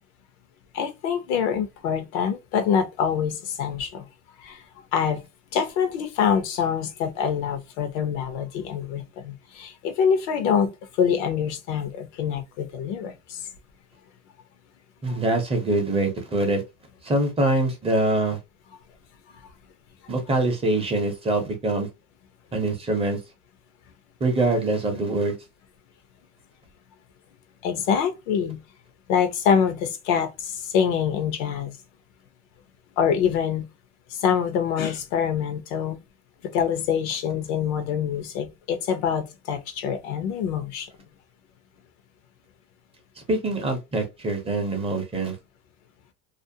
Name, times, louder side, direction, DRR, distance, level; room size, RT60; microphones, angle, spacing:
voice 1, 0.7-4.1 4.4-4.6 4.9-5.2 5.5-10.7 11.0-13.4 19.4-19.5 27.6-28.6 29.1-31.7 33.0-33.7 34.1-36.0 36.4-40.9, left 7 dB, 70° left, 0.7 m, -25 dB
voice 2, 15.0-16.6 17.0-18.4 20.1-21.9 22.5-23.2 24.2-25.4 43.3-45.4, right 2 dB, 15° right, 0.6 m, -24 dB
2.5 x 2.0 x 2.7 m
supercardioid pair, 130°, 34 cm